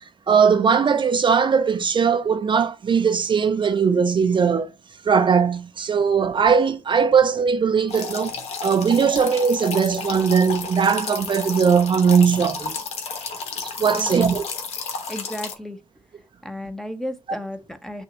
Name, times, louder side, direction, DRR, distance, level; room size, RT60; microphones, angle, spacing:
voice 1, 0.3-4.7 5.0-12.8 13.6-14.4, right 6 dB, 50° right, 0.6 m, -19 dB
sound 1, 7.9-15.5, left 5 dB, 75° left, 1.1 m, -32 dB
voice 2, 13.8-14.2 15.1-15.8 16.4-18.0, left 1 dB, 5° left, 0.9 m, -33 dB
6.0 x 2.4 x 2.9 m
supercardioid pair, 55°, 11 cm